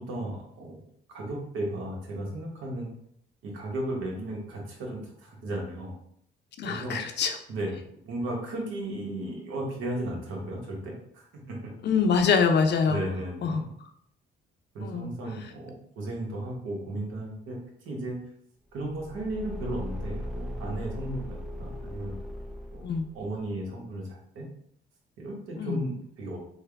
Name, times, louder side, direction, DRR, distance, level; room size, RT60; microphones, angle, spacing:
voice 1, 0.1-0.8 1.1-2.9 3.4-5.9 6.6-7.0 7.5-11.7 12.9-13.7 14.7-18.2 18.7-22.1 22.7-22.8 23.1-24.4 25.2-26.4, right 1 dB, 85° right, -1 dB, 1.0 m, -35 dB
voice 2, 6.6-7.4 11.8-13.0 13.4-13.6 14.8-15.1 22.8-23.0 25.6-25.8, left 5 dB, 60° left, 6 dB, 0.5 m, -24 dB
Car / Engine, 18.8-23.3, left 1 dB, ahead, 0.5 m, -38 dB
3.4 x 2.2 x 3.4 m, 0.69 s
cardioid pair, 90°, 20 cm